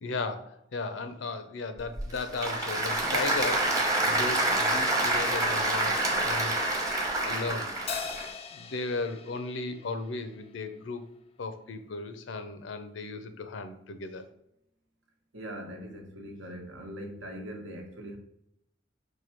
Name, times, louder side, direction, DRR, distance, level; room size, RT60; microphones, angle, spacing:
voice 1, 0.0-6.6 7.2-7.7 8.5-11.0 11.4-14.2, left 3 dB, 80° left, 0.6 m, -35 dB
Applause / Crowd, 1.8-8.3, right 2 dB, 20° right, 0.8 m, -27 dB
Crash cymbal, 7.9-10.6, left 7 dB, 30° left, 0.3 m, -40 dB
voice 2, 15.3-18.2, equal, 85° right, 1.0 m, -41 dB
4.7 x 2.3 x 4.3 m
head